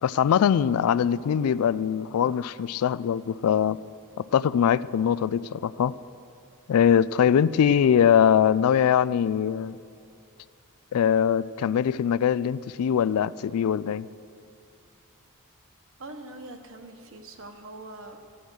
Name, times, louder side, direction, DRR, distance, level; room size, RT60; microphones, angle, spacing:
voice 1, 0.0-3.8 4.2-5.9 6.7-9.8 10.9-14.1, left 8 dB, 70° left, 18 dB, 0.3 m, -22 dB
voice 2, 16.0-18.2, right 2 dB, 60° right, 5 dB, 1.2 m, -42 dB
14.5 x 10.0 x 6.3 m, 2.5 s
head